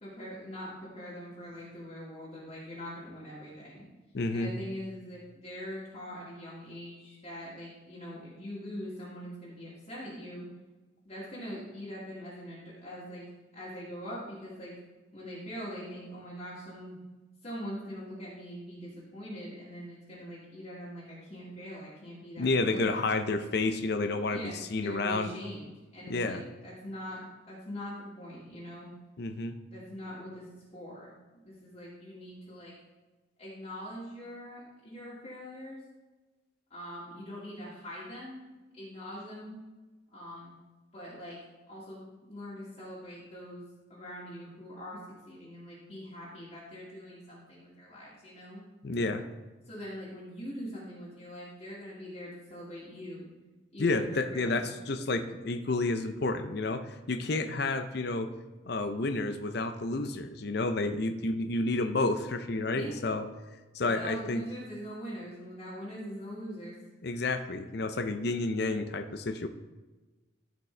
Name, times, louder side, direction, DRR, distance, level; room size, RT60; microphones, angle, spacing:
voice 1, 0.0-3.8 4.3-10.5 11.1-13.2 13.5-14.7 15.1-17.0 17.4-23.0 24.2-28.9 29.7-31.1 31.4-32.7 33.4-35.8 36.7-38.4 38.7-39.5 40.1-40.5 40.9-41.4 41.7-43.6 43.9-45.0 45.3-48.6 49.7-53.3 53.7-54.6 62.7-63.0 63.9-66.8, equal, 30° left, -9 dB, 2.1 m, -42 dB
voice 2, 4.1-4.5 22.4-25.3 26.1-26.4 29.2-29.6 48.8-49.2 53.8-58.3 58.6-63.3 63.7-64.4 67.0-69.5, left 2 dB, 55° left, 7 dB, 0.6 m, -30 dB
14.5 x 5.2 x 3.3 m, 1.2 s
head